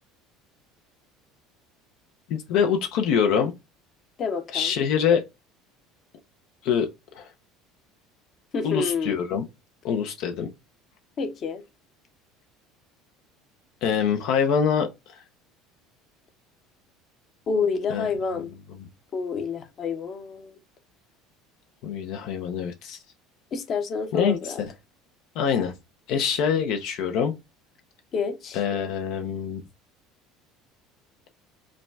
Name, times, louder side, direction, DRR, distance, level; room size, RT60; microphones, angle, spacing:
voice 1, 2.3-3.5 4.5-5.2 6.6-6.9 7.1-7.3 8.6-9.4 9.8-10.5 13.8-15.2 17.9-18.0 21.8-23.0 24.1-24.7 25.4-25.7 26.1-27.3 28.5-29.6, left 7 dB, 65° left, 0.6 m, -24 dB
voice 2, 4.2-4.7 8.5-9.2 11.2-11.6 17.5-18.5 19.1-20.6 23.5-24.6 28.1-28.6, left 5 dB, 40° left, 0.8 m, -28 dB
4.9 x 2.3 x 3.2 m
cardioid pair, 135°, 0 cm